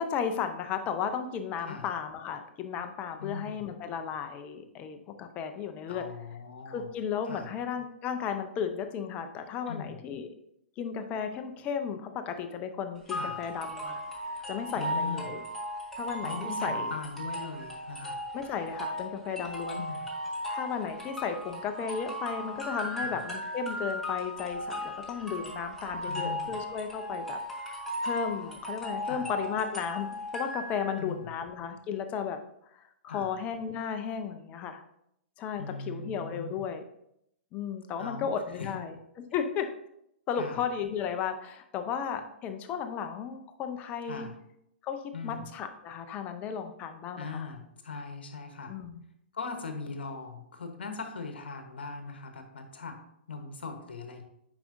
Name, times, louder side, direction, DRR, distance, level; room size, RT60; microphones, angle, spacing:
voice 1, 0.0-6.0 6.7-10.3 10.8-14.0 14.5-15.4 16.0-16.9 18.3-19.8 20.5-27.4 27.7-32.4 32.7-34.8 35.4-36.8 37.5-39.7 40.3-44.3 44.8-47.5 48.7-49.0, left 7 dB, 25° left, 7 dB, 0.6 m, -34 dB
voice 2, 3.2-3.7 5.9-6.9 7.3-7.5 9.7-10.0 13.1-13.4 14.7-15.3 16.2-18.2 19.7-20.1 23.0-23.2 26.0-26.6 29.0-29.3 31.0-31.3 33.1-33.3 35.6-36.6 38.0-38.7 40.4-40.6 44.1-44.3 45.1-45.5 47.2-48.7 49.3-53.0 53.3-54.2, left 4 dB, 60° left, 6 dB, 1.1 m, -40 dB
sound 1, 13.1-31.0, equal, 5° left, 1.3 m, -36 dB
9.0 x 5.1 x 2.6 m, 0.76 s
figure-of-eight pair, 115°, 6 cm